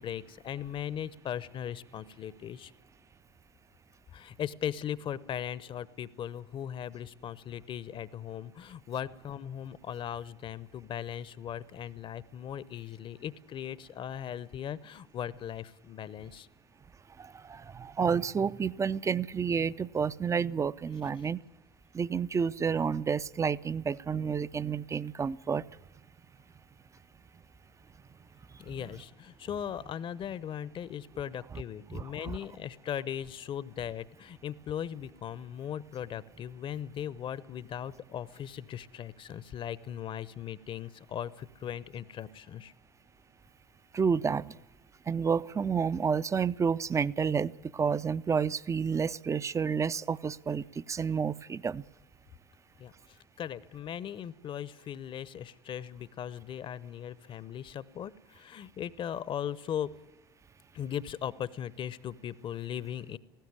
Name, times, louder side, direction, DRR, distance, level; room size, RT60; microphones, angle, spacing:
voice 1, 0.0-2.7 4.1-16.5 28.6-42.7 52.8-59.9 60.7-63.2, left 9 dB, 40° left, 0.9 m, -38 dB
voice 2, 17.2-21.4 21.9-25.6 31.9-32.4 43.9-44.6 45.1-51.8, right 6 dB, 25° right, 0.6 m, -30 dB
18.0 x 16.0 x 9.7 m
hypercardioid pair, 70°, 13 cm